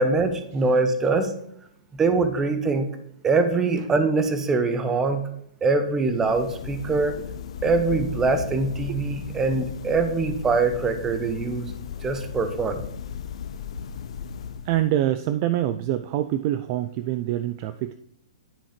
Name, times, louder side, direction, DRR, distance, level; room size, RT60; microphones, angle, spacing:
voice 1, 0.0-1.3 1.9-2.9 3.2-5.2 5.6-7.2 7.6-11.7 12.0-12.8, right 3 dB, 10° right, 9 dB, 0.9 m, -23 dB
sound 1, 5.9-15.1, left 7 dB, 60° left, 0.6 m, -36 dB
voice 2, 14.7-17.9, right 13 dB, 30° right, 11 dB, 0.3 m, -25 dB
10.0 x 5.5 x 5.1 m, 0.73 s
hypercardioid pair, 160°, 4 cm